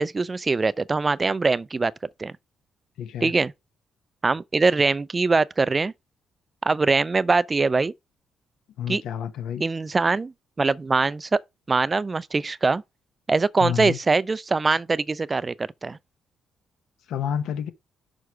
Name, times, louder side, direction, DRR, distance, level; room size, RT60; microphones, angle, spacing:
voice 1, 0.0-1.9 2.2-2.3 3.2-3.5 4.2-5.9 6.6-7.9 8.9-9.0 9.6-10.3 10.6-11.4 11.7-12.8 13.3-16.0, right 3 dB, 25° right, 0.3 m, -22 dB
voice 2, 3.0-3.3 8.8-9.6 13.6-14.0 17.1-17.7, left 9 dB, 80° left, 1.0 m, -29 dB
6.4 x 4.6 x 4.8 m
cardioid pair, 90°, 0 cm